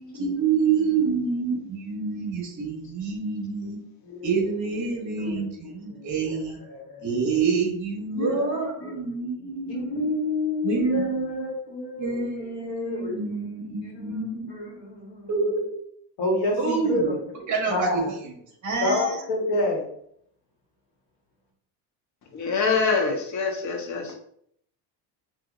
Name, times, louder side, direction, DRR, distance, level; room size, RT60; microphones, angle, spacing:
voice 1, 0.2-3.8 4.2-6.6 7.0-10.0 10.6-11.5 12.0-14.5 15.3-15.7 16.6-17.1 17.5-18.3 18.6-19.2, right 5 dB, 40° right, 0 dB, 1.3 m, -27 dB
voice 2, 0.8-1.1 1.5-1.6 4.0-4.4 5.2-5.5 5.9-6.4 6.7-7.3 8.1-8.9 9.7-13.5 13.8-15.3 16.2-17.2 17.7-18.1 18.8-19.8, left 2 dB, 60° left, 0 dB, 1.2 m, -30 dB
voice 3, 22.3-24.2, left 4 dB, 40° left, 3 dB, 0.8 m, -25 dB
3.8 x 2.5 x 2.5 m, 0.67 s
cardioid pair, 120°, 45 cm